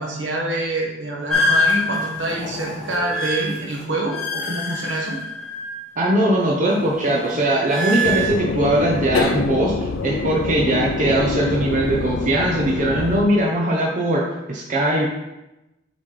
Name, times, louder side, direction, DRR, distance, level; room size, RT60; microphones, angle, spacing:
voice 1, 0.0-5.2, right 1 dB, 70° right, -2 dB, 1.4 m, -26 dB
sound 1, 1.3-6.0 6.3-8.3, left 1 dB, ahead, 1.4 m, -25 dB
voice 2, 6.0-15.1, right 1 dB, 40° right, -2 dB, 0.8 m, -20 dB
sound 2, 8.0-13.2, left 3 dB, 85° left, 0.5 m, -25 dB
6.9 x 4.1 x 3.3 m, 0.96 s
head